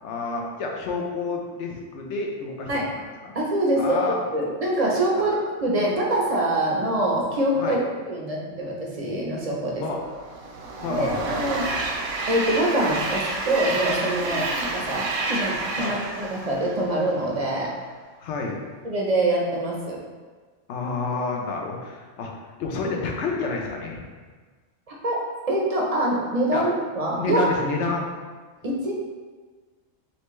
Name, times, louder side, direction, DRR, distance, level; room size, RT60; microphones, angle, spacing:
voice 1, 0.0-2.7 3.2-3.3 3.8-4.2 7.6-7.8 9.8-10.0 10.8-11.3 14.3-14.4 15.8-15.9 18.2-18.6 20.7-22.3 22.6-24.0 26.5-26.6 27.2-28.0, left 4 dB, 70° left, 1 dB, 1.0 m, -29 dB
voice 2, 3.3-4.0 4.3-7.8 8.1-9.9 10.9-11.7 12.3-17.7 18.8-20.0 24.9-25.2 25.5-27.5 28.6-28.9, right 1 dB, 40° right, -3 dB, 0.6 m, -24 dB
Train, 10.0-17.4, right 2 dB, 80° right, 1.0 m, -29 dB
4.3 x 3.2 x 3.1 m, 1.4 s
omnidirectional pair, 1.3 m